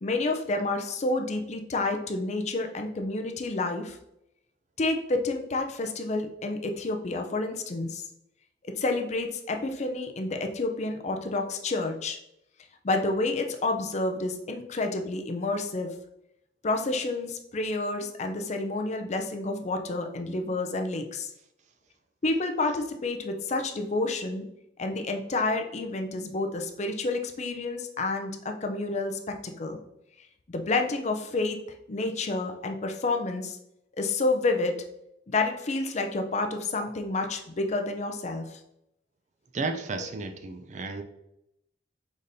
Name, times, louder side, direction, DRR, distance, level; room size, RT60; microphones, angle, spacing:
voice 1, 0.0-4.0 4.8-8.1 8.6-12.2 12.8-15.9 16.6-21.3 22.2-24.5 24.8-29.8 30.5-31.6 31.9-33.6 34.0-34.8 35.3-38.6, left 2 dB, 35° left, 5 dB, 0.5 m, -29 dB
voice 2, 39.5-41.0, right 3 dB, 40° right, 8 dB, 0.4 m, -33 dB
5.0 x 4.0 x 2.6 m, 0.81 s
head